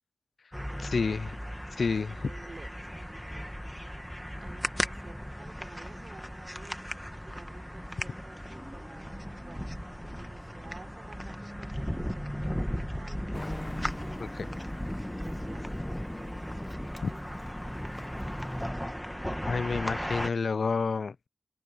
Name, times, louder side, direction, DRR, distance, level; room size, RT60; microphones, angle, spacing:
sound 1, 0.5-20.3, equal, ahead, 1.4 m, -37 dB
voice 1, 0.8-1.4 1.8-2.2 14.2-14.5 19.5-21.3, left 4 dB, 65° left, 0.3 m, -29 dB
voice 2, 1.8-4.1 4.4-13.7 14.0-18.2, right 3 dB, 50° right, 5.2 m, -53 dB
Traffic noise roadway noise, 13.3-18.7, left 1 dB, 20° left, 1.1 m, -41 dB
wide cardioid pair, 70°, 0 cm